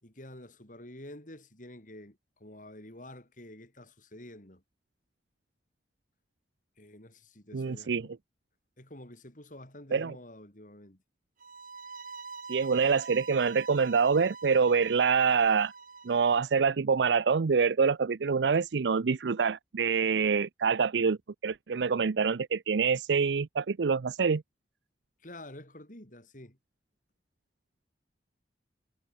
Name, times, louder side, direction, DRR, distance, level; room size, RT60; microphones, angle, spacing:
voice 1, 0.0-4.6 6.8-8.1 8.8-11.0 25.2-26.6, left 1 dB, 50° left, 5.8 m, -49 dB
voice 2, 7.5-8.0 9.9-10.1 12.5-15.7 16.0-21.2 21.4-24.4, right 5 dB, 85° right, 0.5 m, -26 dB
sound 1, 11.4-16.4, right 4 dB, 50° right, 4.3 m, -45 dB
head